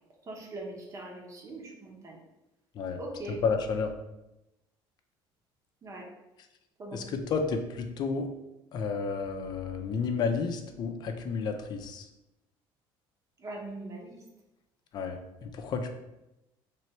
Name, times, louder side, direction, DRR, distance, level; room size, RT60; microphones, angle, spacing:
voice 1, 0.3-2.2 3.0-3.4 5.8-6.0 6.8-7.0 13.4-14.2, right 2 dB, 35° right, -1 dB, 1.0 m, -41 dB
voice 2, 3.4-3.9 6.9-8.3 8.7-12.1 14.9-15.9, left 5 dB, 45° left, 5 dB, 0.5 m, -31 dB
3.4 x 3.0 x 4.3 m, 0.94 s
cardioid pair, 145°, 10 cm